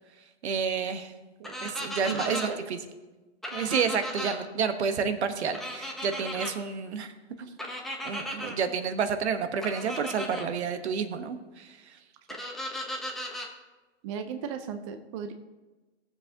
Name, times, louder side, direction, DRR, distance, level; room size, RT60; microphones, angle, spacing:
voice 1, 0.4-1.1 1.6-2.8 3.5-7.1 7.4-7.6 8.0-12.0, right 6 dB, 65° right, 9 dB, 1.1 m, -30 dB
sound 1, 1.4-2.5 3.4-4.4 5.5-6.5 7.6-8.5 9.6-10.5 12.3-13.5, equal, ahead, 0.7 m, -36 dB
voice 2, 2.1-2.6 12.3-12.4 14.0-15.3, right 6 dB, 30° right, 7 dB, 0.5 m, -36 dB
16.0 x 7.2 x 2.8 m, 1.2 s
hypercardioid pair, 130°, 35 cm